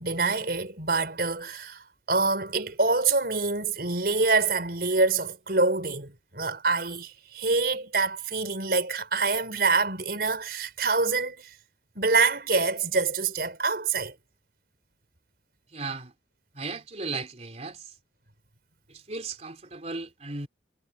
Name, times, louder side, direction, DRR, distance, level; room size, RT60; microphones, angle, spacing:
voice 1, 0.0-11.5 12.0-14.1, right 3 dB, 60° right, 5.5 m, -26 dB
voice 2, 15.7-16.1 16.5-17.9 18.9-20.5, right 3 dB, 40° right, 3.6 m, -36 dB
head